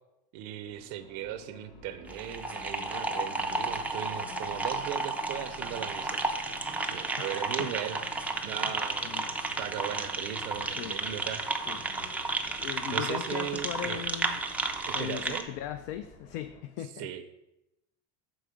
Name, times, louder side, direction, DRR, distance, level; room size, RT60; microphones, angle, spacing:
voice 1, 0.3-6.3 6.9-8.0 8.4-9.1 9.6-11.4 12.9-14.0 14.9-15.5 17.0-17.3, right 11 dB, 65° right, 10 dB, 0.6 m, -38 dB
sound 1, 0.7-16.6, left 3 dB, 50° left, 1.6 m, -51 dB
sound 2, 2.1-15.4, right 2 dB, 5° right, 0.3 m, -33 dB
voice 2, 7.2-7.7 8.6-8.7 9.0-9.2 10.8-11.0 11.7-11.8 12.6-14.4 14.9-17.1, left 11 dB, 70° left, 10 dB, 0.5 m, -38 dB
6.2 x 4.7 x 4.9 m, 0.92 s
supercardioid pair, 125°, 34 cm